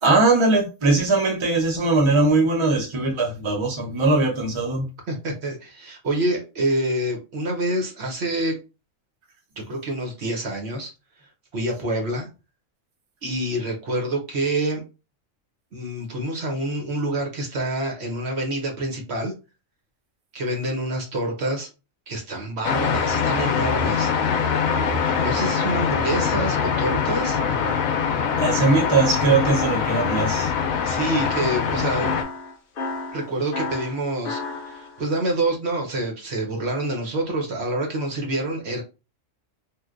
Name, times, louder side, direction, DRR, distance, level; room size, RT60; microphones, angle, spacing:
voice 1, 0.0-4.9 28.4-30.5, right 3 dB, 30° right, 0.6 m, -20 dB
voice 2, 5.1-8.6 9.6-10.9 11.5-12.3 13.2-14.8 15.7-19.3 20.3-21.7 22.1-24.1 25.2-27.4 30.8-32.1 33.1-38.8, right 1 dB, 55° right, 1.0 m, -27 dB
sound 1, 22.6-32.2, left 6 dB, 80° left, 1.0 m, -23 dB
sound 2, 25.3-29.2 31.1-35.1, left 3 dB, 55° left, 0.6 m, -34 dB
3.2 x 2.5 x 2.4 m
omnidirectional pair, 1.4 m